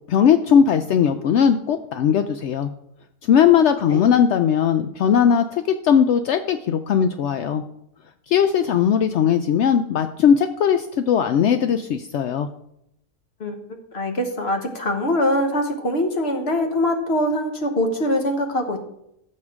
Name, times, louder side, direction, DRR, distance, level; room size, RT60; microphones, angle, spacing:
voice 1, 0.1-2.7 3.3-7.6 8.3-12.5, left 8 dB, 75° left, 8 dB, 0.6 m, -18 dB
voice 2, 13.9-18.8, left 1 dB, 45° left, 5 dB, 1.3 m, -23 dB
14.0 x 6.6 x 3.6 m, 0.78 s
omnidirectional pair, 1.7 m